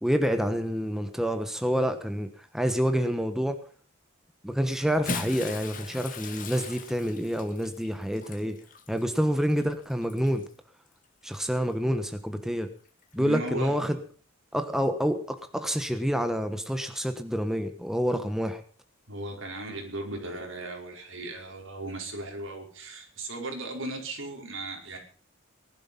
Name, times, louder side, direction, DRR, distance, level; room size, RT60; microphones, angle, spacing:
voice 1, 0.0-3.6 4.4-8.6 8.9-10.5 11.2-12.7 13.1-14.0 14.5-18.6, equal, ahead, 8 dB, 1.2 m, -28 dB
Bathtub (filling or washing) / Splash splatter, 4.8-10.5 11.4-11.6 13.0-13.1, left 4 dB, 40° left, 2.1 m, -39 dB
voice 2, 13.2-13.8 18.1-18.3 19.1-25.0, right 2 dB, 80° right, 2 dB, 5.2 m, -37 dB
19.0 x 12.0 x 5.5 m, 0.41 s
head